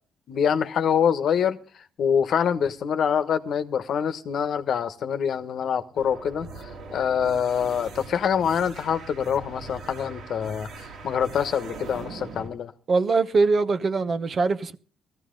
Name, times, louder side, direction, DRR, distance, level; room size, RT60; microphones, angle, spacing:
voice 1, 0.3-6.5 6.9-10.7 11.0-12.7, left 7 dB, 65° left, 1.1 m, -25 dB
sound 1, 5.9-12.5, right 3 dB, 75° right, 2.5 m, -41 dB
voice 2, 12.9-14.8, right 4 dB, 45° right, 1.0 m, -22 dB
17.0 x 14.0 x 3.8 m
cardioid pair, 90°, 0 cm